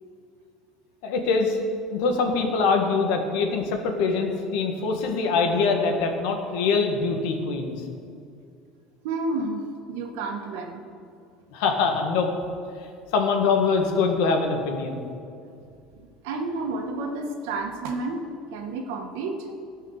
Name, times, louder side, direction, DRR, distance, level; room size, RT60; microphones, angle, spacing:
voice 1, 1.0-1.6 1.9-7.8 11.5-12.3 13.1-15.0, left 4 dB, 70° left, 4 dB, 1.7 m, -23 dB
voice 2, 9.0-10.8 15.4-15.5 15.9-18.2 18.5-19.4, right 3 dB, 90° right, 4 dB, 1.5 m, -31 dB
16.5 x 5.6 x 6.7 m, 2.4 s
cardioid pair, 170°, 0 cm